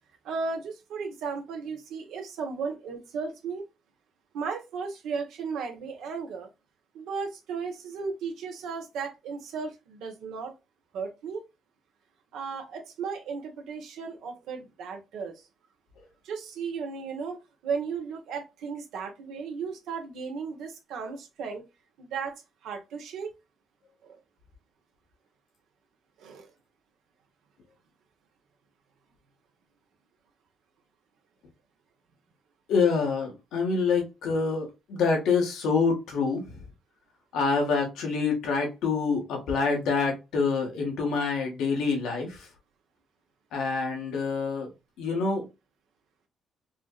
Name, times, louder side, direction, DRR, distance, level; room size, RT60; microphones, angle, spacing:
voice 1, 0.2-3.6 4.3-6.5 6.9-10.5 10.9-11.4 12.3-15.4 16.2-21.6 22.0-22.4 22.6-23.3 24.0-24.2 26.2-26.5, right 5 dB, 85° right, 1.1 m, -35 dB
voice 2, 32.7-36.5 37.3-42.5 43.5-44.7 45.0-45.5, left 4 dB, 85° left, 1.6 m, -26 dB
4.8 x 2.4 x 2.4 m
cardioid pair, 90°, 0 cm